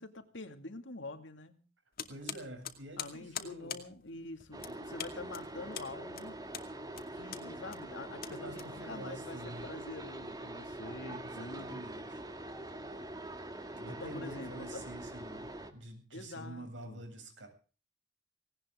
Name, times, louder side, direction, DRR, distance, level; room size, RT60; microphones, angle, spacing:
voice 1, 0.0-1.6 3.0-6.4 7.1-11.8 13.9-14.8 16.1-17.0, left 2 dB, 75° left, 7 dB, 2.4 m, -46 dB
sound 1, 2.0-9.2, left 8 dB, 55° left, 2.4 m, -45 dB
voice 2, 2.1-3.8 8.3-9.7 11.0-12.2 13.7-17.5, right 1 dB, 85° right, 4 dB, 7.9 m, -47 dB
sound 2, 4.5-15.7, right 1 dB, 20° right, 1.9 m, -44 dB
18.5 x 18.5 x 3.8 m, 0.39 s
head